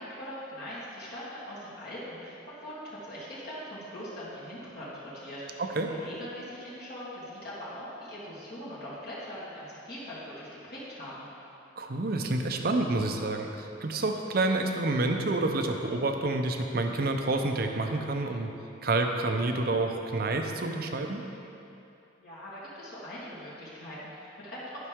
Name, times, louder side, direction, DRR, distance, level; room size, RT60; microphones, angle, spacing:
voice 1, 0.0-11.2 22.2-24.9, equal, 55° left, -9 dB, 1.7 m, -41 dB
voice 2, 11.8-18.5 18.8-21.2, right 2 dB, 50° right, 4 dB, 0.6 m, -28 dB
11.5 x 5.8 x 3.6 m, 2.8 s
head